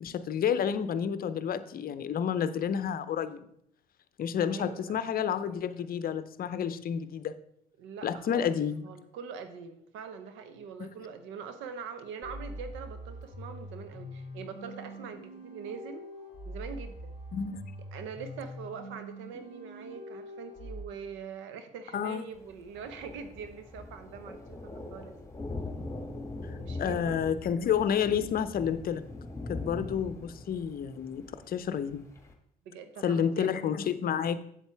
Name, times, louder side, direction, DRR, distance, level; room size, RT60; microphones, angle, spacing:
voice 1, 0.0-3.5 4.2-7.3 8.0-8.9 10.8-10.9 17.3-17.7 21.9-22.2 26.5-29.0 29.5-32.0 33.0-34.4, left 8 dB, 45° left, 14 dB, 0.6 m, -30 dB
voice 2, 4.5-5.0 7.8-8.6 8.8-16.0 16.5-17.2 17.9-25.2 26.6-27.4 32.7-33.5, right 6 dB, 70° right, 10 dB, 0.8 m, -43 dB
sound 1, 12.2-20.8, equal, 35° right, 3.3 m, -44 dB
Thunder, 22.4-32.3, left 2 dB, 15° left, 1.7 m, -42 dB
8.0 x 7.3 x 3.5 m, 0.70 s
hypercardioid pair, 60°, 21 cm